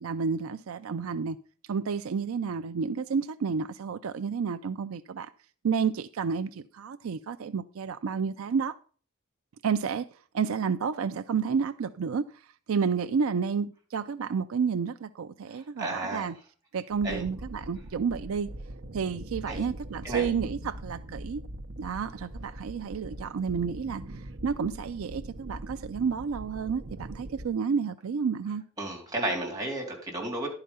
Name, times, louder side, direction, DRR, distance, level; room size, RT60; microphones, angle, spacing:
voice 1, 0.0-1.4 1.7-5.3 5.6-8.8 9.6-10.1 10.3-12.4 12.7-16.3 16.7-18.5 18.9-21.4 21.8-28.6, right 6 dB, 85° right, 0.4 m, -30 dB
voice 2, 15.5-16.3 17.0-17.2 19.5-19.6 20.0-20.3 28.8-30.5, right 1 dB, 15° right, 3.6 m, -33 dB
sound 1, 16.9-27.5, right 1 dB, 60° right, 0.8 m, -42 dB
11.0 x 4.9 x 5.5 m
head